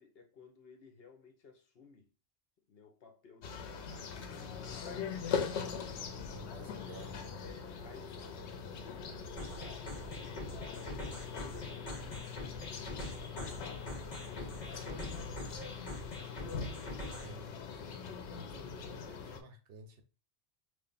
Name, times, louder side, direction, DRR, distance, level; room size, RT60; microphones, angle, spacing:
voice 1, 0.0-2.1 2.7-5.2 5.9-6.4 6.8-9.2 9.5-13.5 13.9-15.6, left 5 dB, 65° left, 1.0 m, -58 dB
sound 1, 3.4-19.4, left 6 dB, 90° left, 0.9 m, -41 dB
voice 2, 6.1-7.5 17.2-17.6 17.9-20.0, right 3 dB, 65° right, 0.9 m, -53 dB
sound 2, 9.4-17.4, left 1 dB, 40° left, 1.3 m, -45 dB
3.3 x 2.5 x 3.8 m
omnidirectional pair, 1.1 m